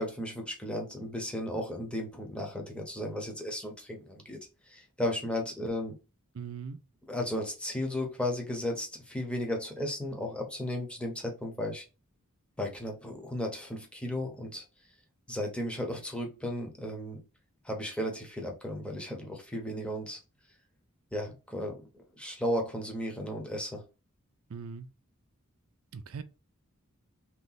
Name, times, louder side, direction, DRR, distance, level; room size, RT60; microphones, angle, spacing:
voice 1, 0.0-4.4 4.7-5.9 7.1-11.8 12.6-14.6 15.3-17.2 17.6-20.2 21.1-21.8 22.2-23.8, left 1 dB, 5° left, 0.9 m, -34 dB
voice 2, 6.3-6.8 24.5-24.9 25.9-26.2, right 6 dB, 75° right, 0.4 m, -40 dB
3.2 x 2.9 x 4.0 m
head